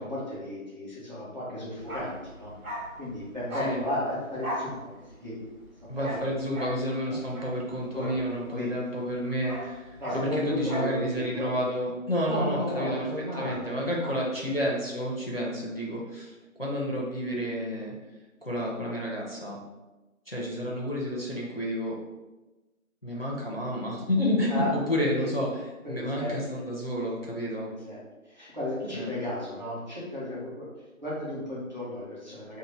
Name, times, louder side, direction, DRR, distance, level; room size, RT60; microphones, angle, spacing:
voice 1, 0.0-2.5 3.0-5.4 7.1-7.2 7.9-8.7 10.0-11.5 12.3-14.2 24.5-24.8 25.1-25.3 25.8-26.4 27.6-30.7 31.0-32.6, left 1 dB, 35° right, -9 dB, 0.9 m, -34 dB
Bark, 1.8-8.8 9.1-11.0 11.3-11.4, equal, 85° right, 1.1 m, -38 dB
voice 2, 5.9-13.1 13.3-16.3 16.6-17.9 18.4-19.6 20.3-22.0 23.0-27.7 28.9-29.1, equal, 45° left, -3 dB, 0.5 m, -30 dB
2.6 x 2.3 x 3.1 m, 1.1 s
figure-of-eight pair, 175°, 42 cm